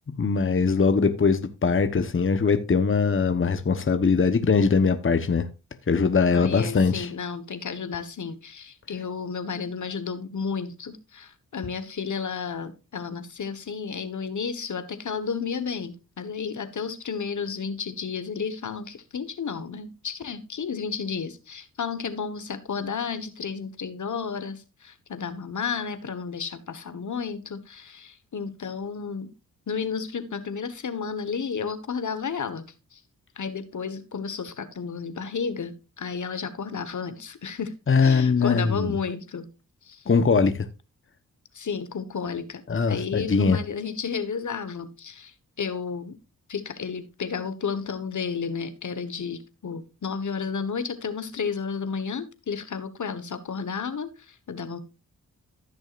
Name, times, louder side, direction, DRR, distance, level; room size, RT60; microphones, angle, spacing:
voice 1, 0.2-5.5 5.9-7.1 37.9-39.0 40.1-40.6 42.7-43.6, left 5 dB, 35° left, 1.1 m, -21 dB
voice 2, 6.3-29.3 29.7-32.6 32.9-33.0 33.4-37.7 38.0-39.5 39.8-40.0 41.5-42.6 42.9-46.2 46.5-54.8, left 5 dB, 55° left, 1.4 m, -32 dB
15.0 x 6.3 x 2.5 m
cardioid pair, 50°, 35 cm